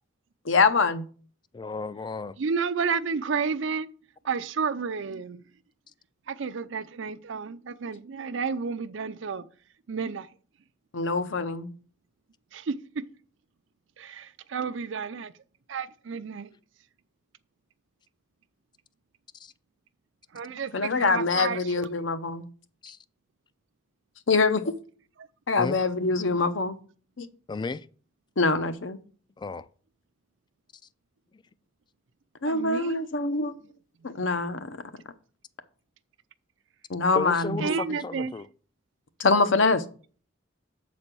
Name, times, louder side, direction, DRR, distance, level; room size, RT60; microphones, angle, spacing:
voice 1, 0.5-1.1 10.9-11.7 20.7-22.4 24.3-24.7 25.5-26.8 27.2-27.3 28.4-29.0 32.4-33.6 34.0-34.8 36.9-37.6 39.2-39.8, left 3 dB, 75° left, 0.8 m, -24 dB
voice 2, 1.5-2.4 19.3-19.5 22.8-23.0 25.6-25.8 27.5-27.9 29.4-29.7 31.3-31.4 37.2-38.4, left 4 dB, 25° left, 0.3 m, -34 dB
voice 3, 2.4-3.9 4.2-5.5 6.3-9.5 9.9-10.3 12.5-13.1 14.0-15.3 15.7-16.6 20.3-22.0 32.4-33.1 37.6-38.4, right 5 dB, 70° right, 0.5 m, -31 dB
7.7 x 4.2 x 6.0 m
head